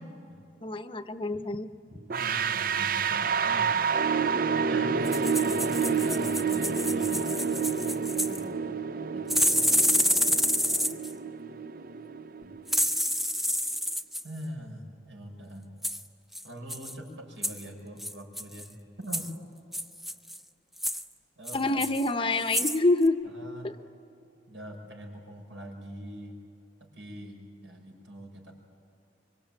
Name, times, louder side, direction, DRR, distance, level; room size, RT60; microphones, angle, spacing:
voice 1, 0.6-1.7 10.8-10.9 21.5-23.2 23.6-23.7, left 2 dB, 30° left, 9 dB, 0.9 m, -26 dB
sound 1, 2.1-13.0, right 6 dB, 50° right, 0.6 m, -29 dB
voice 2, 2.1-4.0 4.5-8.5 9.1-10.4 12.4-12.5 14.2-15.7 16.4-19.4 21.4-21.8 23.2-23.7 24.5-26.4 26.8-28.5, right 1 dB, 80° right, 2 dB, 5.9 m, -43 dB
sound 2, 5.0-8.4 9.3-11.1 12.7-14.2 15.8-16.0 16.3-16.4 16.7-16.9 17.4-17.6 18.0-18.6 19.1-19.3 19.7-20.4 20.8-21.0 21.5-22.1 22.4-22.8 23.1-23.2, equal, ahead, 0.6 m, -28 dB
25.5 x 24.5 x 8.9 m, 2.6 s
head